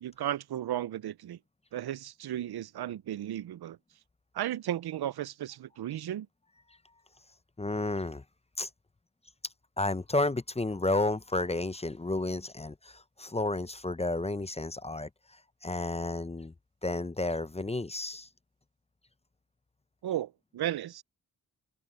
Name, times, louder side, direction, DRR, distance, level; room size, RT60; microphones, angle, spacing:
voice 1, 0.0-1.4 1.7-3.8 4.3-6.3 20.0-21.0, right 12 dB, 65° right, 0.7 m, -34 dB
voice 2, 7.6-8.2 8.6-8.7 9.8-15.1 15.6-16.5 16.8-18.3, left 2 dB, 15° left, 0.8 m, -31 dB
supercardioid pair, 40°, 41 cm